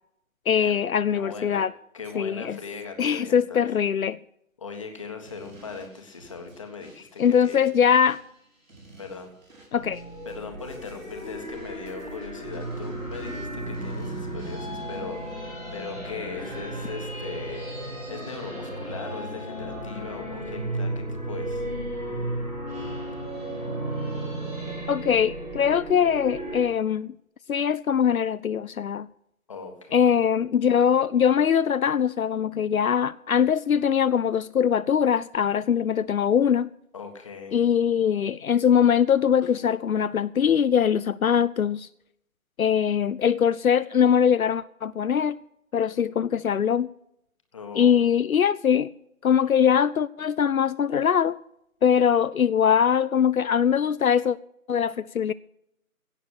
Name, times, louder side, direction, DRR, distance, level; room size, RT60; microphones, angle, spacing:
voice 1, 0.5-1.7 2.1-2.6 3.0-4.2 7.2-8.2 9.7-10.0 24.9-27.1 27.5-29.1 29.9-36.7 37.5-41.9 42.6-45.4 45.7-46.9 47.7-48.9 49.2-51.4 51.8-54.4 54.7-55.3, left 8 dB, 75° left, 0.6 m, -22 dB
voice 2, 1.1-1.6 1.9-3.6 4.6-7.6 9.0-9.3 10.2-21.7 22.3-22.4 29.5-30.0 36.9-37.6 47.5-48.0, left 5 dB, 25° left, 1.5 m, -39 dB
sound 1, 5.2-15.3, right 3 dB, 65° right, 6.5 m, -53 dB
sound 2, 9.7-26.6, right 1 dB, 5° right, 1.9 m, -34 dB
16.5 x 6.7 x 7.8 m
figure-of-eight pair, 160°, 42 cm